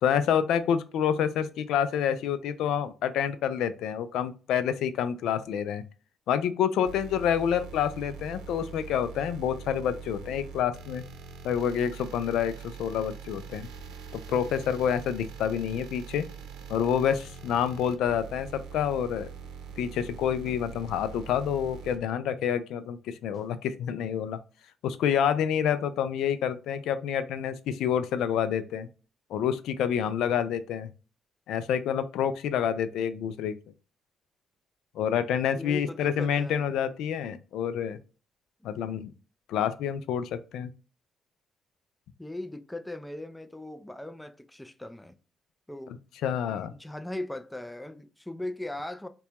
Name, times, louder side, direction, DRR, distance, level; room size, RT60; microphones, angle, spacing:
voice 1, 0.0-5.8 6.3-11.0 11.4-13.7 14.1-16.3 16.7-19.3 19.8-24.4 24.8-28.9 29.3-30.9 31.5-33.6 35.0-38.0 38.6-39.1 39.5-40.7 45.9-46.0 46.2-46.7, left 8 dB, 85° left, 0.3 m, -28 dB
sound 1, 6.9-22.0, right 6 dB, 90° right, 0.7 m, -43 dB
sound 2, 17.5-17.8 20.4-20.8 23.3-23.6, left 1 dB, 30° left, 1.9 m, -54 dB
voice 2, 35.5-36.7 42.2-45.1 45.7-45.9 46.5-49.1, left 1 dB, 10° left, 0.4 m, -39 dB
4.1 x 2.2 x 2.9 m
cardioid pair, 90°, 0 cm